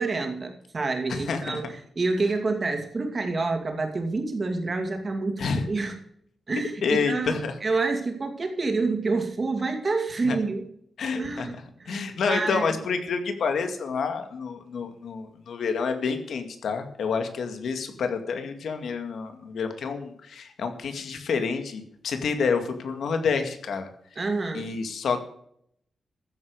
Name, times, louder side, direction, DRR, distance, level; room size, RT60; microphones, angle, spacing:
voice 1, 0.0-6.0 6.5-10.7 11.1-12.0 12.3-12.6 24.2-24.7, right 3 dB, 30° right, 4 dB, 2.5 m, -28 dB
voice 2, 1.1-1.6 5.4-5.6 6.8-7.5 10.2-10.4 11.0-11.5 11.9-23.9 24.5-25.2, left 5 dB, 75° left, 7 dB, 2.1 m, -28 dB
14.5 x 8.3 x 6.6 m, 0.68 s
wide cardioid pair, 170°, 0 cm